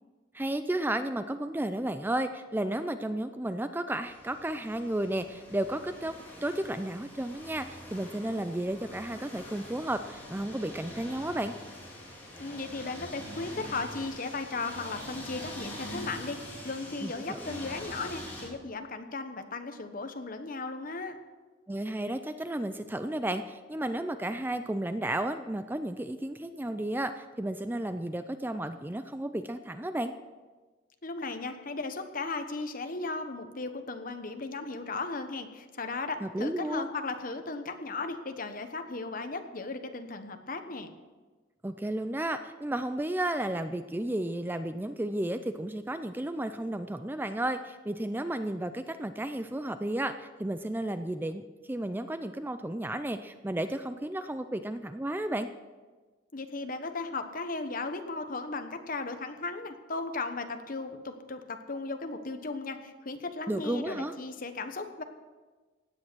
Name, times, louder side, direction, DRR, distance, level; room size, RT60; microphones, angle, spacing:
voice 1, 0.3-6.2 6.4-11.5 17.0-17.6 21.7-30.1 36.2-36.9 41.6-55.5 63.5-64.1, right 1 dB, 10° right, 10 dB, 0.4 m, -33 dB
sound 1, 4.0-18.5, left 1 dB, 10° left, 4.2 m, -44 dB
voice 2, 12.4-21.2 31.0-40.9 56.3-65.0, left 3 dB, 45° left, 7 dB, 1.2 m, -36 dB
16.5 x 9.8 x 6.2 m, 1.3 s
head